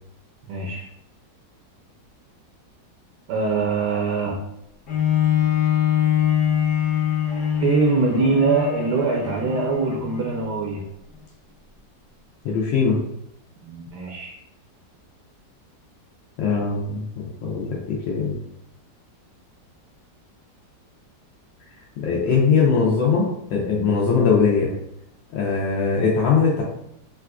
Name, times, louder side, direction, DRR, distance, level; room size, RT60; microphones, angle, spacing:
voice 1, 0.5-0.9 3.3-4.4 7.6-10.8 13.6-14.4, right 4 dB, 75° right, -1 dB, 1.1 m, -23 dB
Bowed string instrument, 4.9-10.5 11.1-11.2, left 10 dB, 60° left, 0.8 m, -23 dB
voice 2, 12.4-13.0 16.4-18.4 22.0-24.7 25.3-26.6, left 5 dB, 90° left, -4 dB, 1.3 m, -21 dB
4.1 x 2.4 x 2.2 m, 0.78 s
omnidirectional pair, 1.9 m